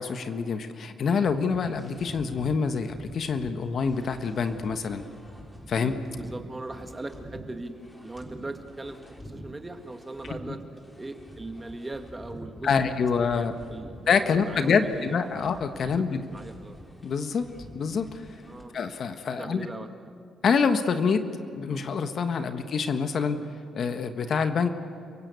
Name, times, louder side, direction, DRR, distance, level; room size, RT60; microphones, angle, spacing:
voice 1, 0.0-5.0 5.7-6.0 12.6-13.5 14.1-16.2 17.0-17.5 17.7-18.2 18.7-19.7 20.4-21.2 21.6-23.4 23.7-24.7, left 5 dB, 55° left, 8 dB, 1.5 m, -26 dB
sound 1, 1.3-18.6, equal, 15° left, 3.6 m, -46 dB
voice 2, 6.2-7.7 8.0-10.6 11.0-15.4 16.0-16.8 18.4-18.8 19.4-20.1, right 2 dB, 20° right, 7 dB, 2.0 m, -40 dB
30.0 x 17.0 x 8.4 m, 2.4 s
cardioid pair, 90°, 0 cm